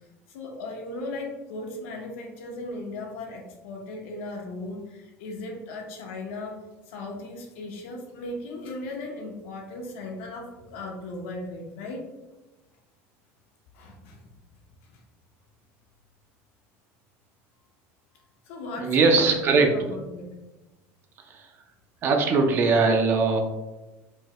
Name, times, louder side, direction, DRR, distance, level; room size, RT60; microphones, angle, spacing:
voice 1, 0.3-12.0 13.7-14.2 14.8-14.9 18.4-20.3, left 2 dB, 85° left, 1 dB, 0.9 m, -37 dB
voice 2, 18.8-19.7 21.2-21.5 22.0-23.4, right 4 dB, 35° right, 4 dB, 0.5 m, -21 dB
4.6 x 2.1 x 2.9 m, 1.1 s
cardioid pair, 155°, 7 cm